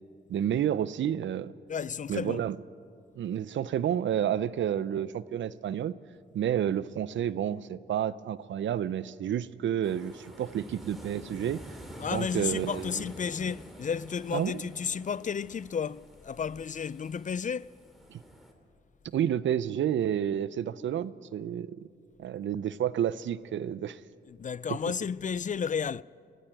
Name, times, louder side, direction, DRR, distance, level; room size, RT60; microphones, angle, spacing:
voice 1, 0.3-1.5 2.1-2.6 3.2-5.9 6.3-11.6 12.1-13.0 14.3-14.7 18.1-18.2 19.1-21.9 22.2-24.0, right 10 dB, 80° right, 0.6 m, -30 dB
voice 2, 1.7-2.4 12.0-17.7 24.4-26.0, left 6 dB, 40° left, 0.4 m, -32 dB
sound 1, 9.8-18.5, equal, ahead, 3.4 m, -48 dB
22.0 x 15.5 x 9.0 m
cardioid pair, 65°, 19 cm